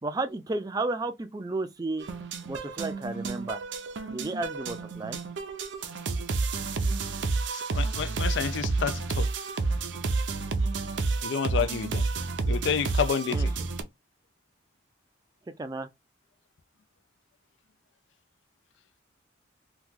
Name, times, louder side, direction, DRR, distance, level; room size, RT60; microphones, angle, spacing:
voice 1, 0.0-2.1 2.5-3.6 4.1-5.2 13.3-13.5 15.6-15.9, right 2 dB, 20° right, 0.3 m, -32 dB
sound 1, 2.0-13.8, right 3 dB, 70° right, 0.5 m, -30 dB
voice 2, 7.5-9.3 11.2-12.0 12.5-13.5, left 6 dB, 70° left, 0.4 m, -29 dB
3.0 x 2.3 x 3.5 m
head